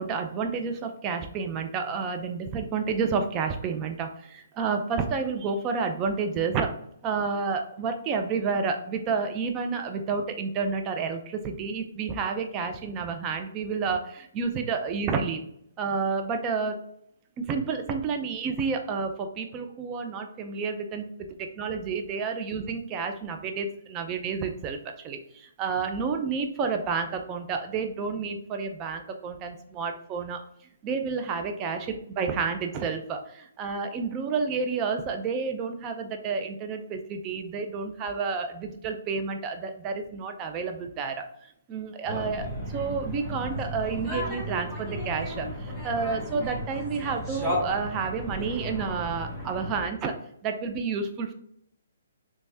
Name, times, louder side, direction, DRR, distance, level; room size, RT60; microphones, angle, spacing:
voice 1, 0.0-6.7 7.0-15.4 15.8-16.8 17.4-21.3 21.6-24.8 25.0-30.4 30.8-41.2 41.7-50.1 50.4-51.3, right 5 dB, 25° right, 5 dB, 0.4 m, -30 dB
sound 1, 42.1-49.8, equal, 5° right, 1.1 m, -34 dB
3.4 x 3.1 x 2.7 m, 0.72 s
hypercardioid pair, 150°, 0 cm